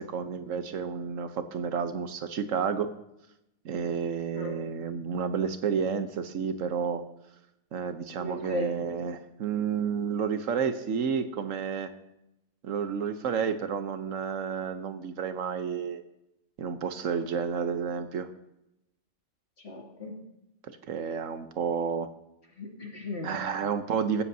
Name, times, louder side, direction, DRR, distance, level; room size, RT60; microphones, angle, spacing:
voice 1, 0.0-2.9 3.6-7.0 7.7-11.9 12.6-16.0 16.6-18.3 20.9-22.1 23.2-24.2, right 6 dB, 85° right, 9 dB, 1.3 m, -30 dB
voice 2, 8.2-9.0 19.6-20.2 22.6-23.3, left 2 dB, 55° left, -1 dB, 2.8 m, -37 dB
15.5 x 14.5 x 2.8 m, 0.87 s
omnidirectional pair, 1.3 m